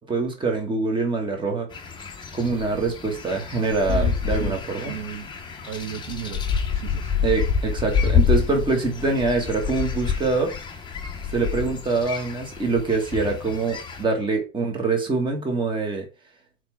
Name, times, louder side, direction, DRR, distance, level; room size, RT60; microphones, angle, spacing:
voice 1, 0.1-1.7 2.3-5.0 7.2-10.5 11.3-16.1, right 3 dB, 10° right, 1.4 m, -24 dB
sound 1, 1.7-14.0, left 6 dB, 10° left, 0.8 m, -27 dB
voice 2, 3.9-4.6 4.8-5.3 5.6-7.1, right 8 dB, 85° right, 2.1 m, -34 dB
4.6 x 4.3 x 5.7 m
supercardioid pair, 145°, 40 cm